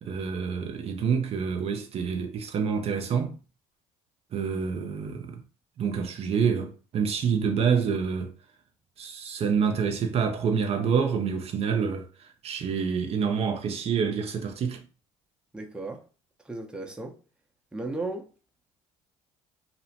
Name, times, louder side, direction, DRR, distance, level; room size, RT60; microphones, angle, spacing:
voice 1, 0.0-3.3 4.3-5.4 5.8-8.3 9.0-14.8, right 6 dB, 50° right, 0.5 m, -27 dB
voice 2, 15.5-16.0 16.4-17.2 17.7-18.3, right 2 dB, 5° right, 0.6 m, -35 dB
2.8 x 2.0 x 2.8 m
supercardioid pair, 75°, 14 cm